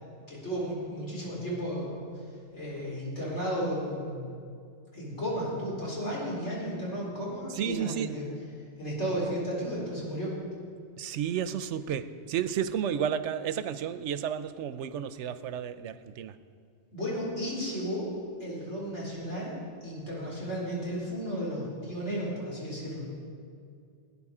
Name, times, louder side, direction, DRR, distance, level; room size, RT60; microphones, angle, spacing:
voice 1, 0.3-2.0 2.5-4.3 4.9-8.3 8.8-10.3 16.9-18.1 18.4-19.5 19.8-23.0, equal, 90° left, -5 dB, 4.6 m, -33 dB
voice 2, 7.6-8.1 11.0-16.3, right 8 dB, 90° right, 12 dB, 1.0 m, -32 dB
18.0 x 9.9 x 4.9 m, 2.3 s
omnidirectional pair, 1.2 m